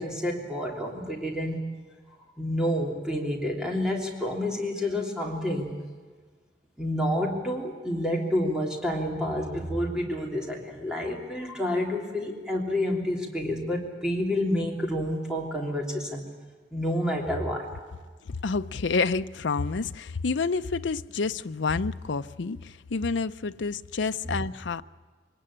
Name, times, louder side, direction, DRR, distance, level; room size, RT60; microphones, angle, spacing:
voice 1, 0.0-1.7 2.4-5.7 6.8-16.2 16.7-17.7, left 1 dB, 5° right, 3.1 m, -29 dB
voice 2, 18.3-24.8, left 4 dB, 90° left, 0.6 m, -29 dB
24.0 x 19.0 x 8.7 m
head